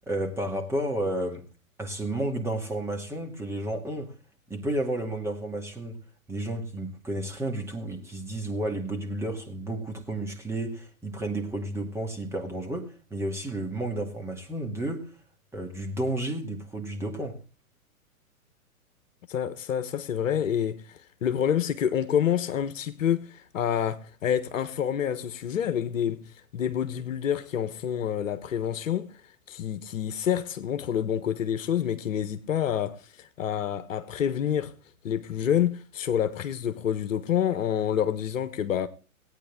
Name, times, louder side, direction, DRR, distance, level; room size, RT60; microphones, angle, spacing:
voice 1, 0.0-1.4 1.8-4.1 4.5-6.0 6.3-15.1 15.5-17.4, right 1 dB, 5° right, 2.3 m, -32 dB
voice 2, 19.3-26.2 26.5-29.2 29.5-34.7 35.0-38.9, left 9 dB, 60° left, 1.4 m, -28 dB
17.5 x 9.4 x 3.7 m
figure-of-eight pair, 120°, 43 cm